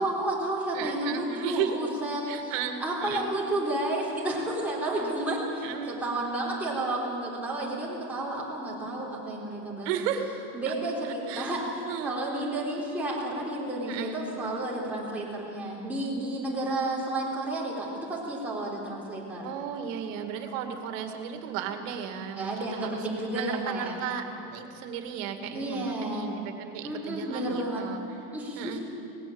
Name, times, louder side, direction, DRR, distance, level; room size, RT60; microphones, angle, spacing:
voice 1, 0.0-2.5 2.8-9.9 10.5-11.6 12.0-19.5 22.3-24.0 25.5-26.3 26.8-27.8 28.3-28.8, right 1 dB, 5° right, -6 dB, 3.8 m, -31 dB
voice 2, 0.7-1.8 2.3-3.3 4.9-5.1 5.6-6.0 9.8-10.3 10.7-10.8 11.0-12.5 13.9-14.2 19.4-23.1 23.3-28.2 28.6-28.8, right 8 dB, 80° right, 5 dB, 2.3 m, -35 dB
18.5 x 17.0 x 8.8 m, 2.7 s
cardioid pair, 150°, 38 cm